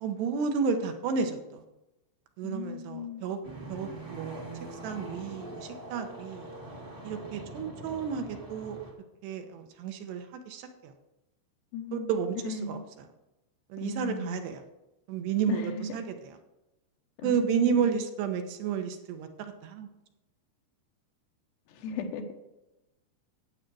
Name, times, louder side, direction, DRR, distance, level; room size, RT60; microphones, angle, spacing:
voice 1, 0.0-1.6 2.4-3.4 3.7-4.5 4.8-6.5 7.0-8.8 9.2-10.9 11.9-12.8 13.7-14.6 15.1-16.0 17.2-19.9, right 6 dB, 80° right, 6 dB, 3.2 m, -31 dB
voice 2, 2.4-3.3 11.7-12.1 12.5-12.8 13.8-14.4 15.5-16.0 17.2-18.1 21.7-22.3, left 3 dB, 80° left, 5 dB, 3.3 m, -36 dB
sound 1, 3.4-8.9, right 1 dB, 30° right, 1.0 m, -43 dB
11.5 x 8.9 x 4.8 m, 0.97 s
omnidirectional pair, 4.8 m